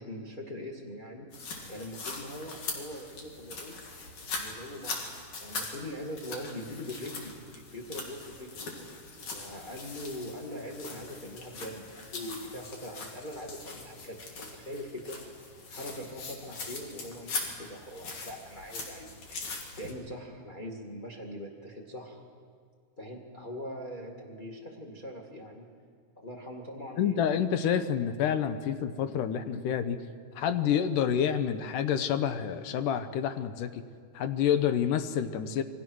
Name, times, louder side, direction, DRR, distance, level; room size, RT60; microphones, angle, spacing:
voice 1, 0.0-3.7 4.4-5.0 5.4-8.7 9.3-15.2 15.7-19.5 19.8-22.2 23.0-25.7 26.2-27.2, equal, 20° left, 1 dB, 1.5 m, -42 dB
sound 1, 1.3-19.9, left 3 dB, 65° left, 4.2 m, -41 dB
voice 2, 27.0-30.0 30.4-33.8 34.1-35.6, left 8 dB, 90° left, 10 dB, 2.6 m, -28 dB
27.5 x 23.5 x 6.3 m, 2.1 s
omnidirectional pair, 3.6 m